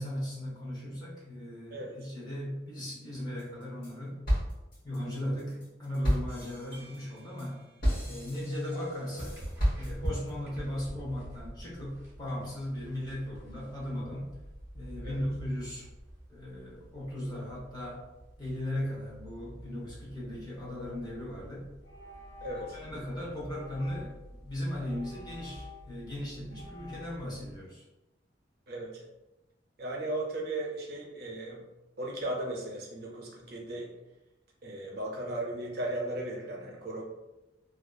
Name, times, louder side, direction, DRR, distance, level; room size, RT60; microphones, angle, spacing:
voice 1, 0.0-4.2 4.8-7.6 8.0-9.5 9.7-14.3 14.7-15.9 16.3-18.0 18.4-21.7 22.7-24.1 24.4-27.8, left 1 dB, 20° left, -5 dB, 0.7 m, -37 dB
voice 2, 1.7-2.1 15.0-15.2 22.4-22.8 28.7-29.0 29.8-31.6 32.0-33.9 34.6-37.0, right 1 dB, 60° right, -1 dB, 0.5 m, -36 dB
sound 1, 3.4-3.9 4.3-10.3, equal, 50° left, 1.1 m, -32 dB
sound 2, 9.2-27.6, right 1 dB, 15° right, 0.6 m, -46 dB
sound 3, 21.0-21.2 21.8-22.9 23.5-24.3 24.8-26.1 26.5-27.1, left 5 dB, 75° left, 0.6 m, -50 dB
2.6 x 2.3 x 2.2 m, 0.97 s
head